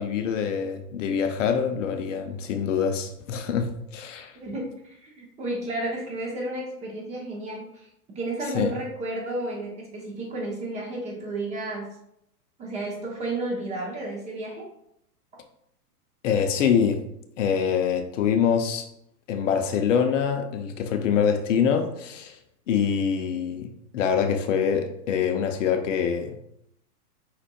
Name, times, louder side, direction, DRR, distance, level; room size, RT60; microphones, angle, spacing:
voice 1, 0.0-4.4 8.5-8.7 16.2-17.0 17.4-18.9 19.3-22.4 22.7-23.7 23.9-26.4, left 7 dB, 50° left, 6 dB, 0.6 m, -25 dB
voice 2, 4.4-7.9 8.1-11.9 12.6-14.7, right 2 dB, 15° right, -2 dB, 0.7 m, -32 dB
5.2 x 4.1 x 2.3 m, 0.77 s
hypercardioid pair, 140°, 47 cm